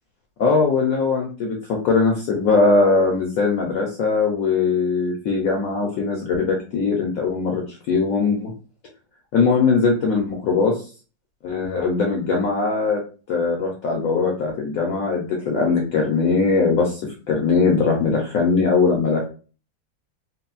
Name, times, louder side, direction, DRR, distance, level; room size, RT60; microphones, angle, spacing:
voice 1, 0.4-8.5 9.3-10.9 11.4-13.0 13.3-17.0 17.3-19.2, left 4 dB, 75° left, 0 dB, 0.8 m, -20 dB
3.9 x 2.0 x 2.3 m, 0.36 s
omnidirectional pair, 2.1 m